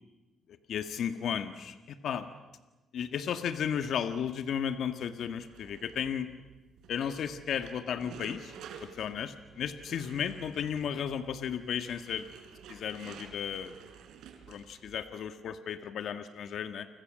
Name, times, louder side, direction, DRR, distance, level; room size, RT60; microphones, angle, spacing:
voice 1, 0.5-2.3 2.9-6.3 6.9-12.3 12.7-13.7 14.5-16.9, left 8 dB, 70° left, 10 dB, 1.7 m, -34 dB
sound 1, 5.3-15.0, right 7 dB, 80° right, 4.2 m, -51 dB
29.5 x 25.5 x 7.7 m, 1.1 s
cardioid pair, 90°, 0 cm